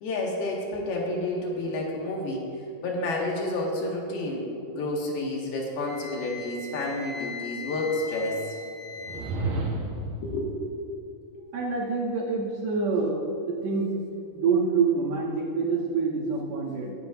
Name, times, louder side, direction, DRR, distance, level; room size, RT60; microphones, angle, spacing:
voice 1, 0.0-2.5 2.8-8.4 10.2-10.5, left 2 dB, 80° left, -2 dB, 3.7 m, -30 dB
Wind instrument woodwind instrument, 5.8-9.3, left 4 dB, 45° right, 1.5 m, -39 dB
sound 1, 9.0-10.2, right 2 dB, 65° right, 3.2 m, -30 dB
voice 2, 11.5-13.2 13.5-13.9 14.3-16.9, right 4 dB, 85° right, -5 dB, 4.2 m, -26 dB
23.0 x 10.5 x 2.6 m, 2.7 s
omnidirectional pair, 4.4 m